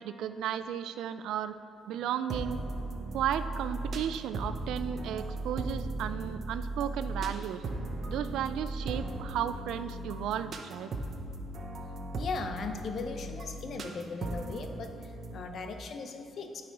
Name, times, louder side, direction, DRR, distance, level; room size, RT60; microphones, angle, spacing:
voice 1, 0.0-1.5 1.9-2.6 3.1-7.6 8.1-10.9, right 9 dB, 85° right, 12 dB, 0.3 m, -34 dB
sound 1, 2.3-15.4, right 2 dB, 55° right, 0.7 m, -37 dB
voice 2, 12.1-16.6, left 4 dB, 60° left, 6 dB, 0.7 m, -38 dB
9.1 x 4.9 x 4.6 m, 2.7 s
cardioid pair, 90°, 0 cm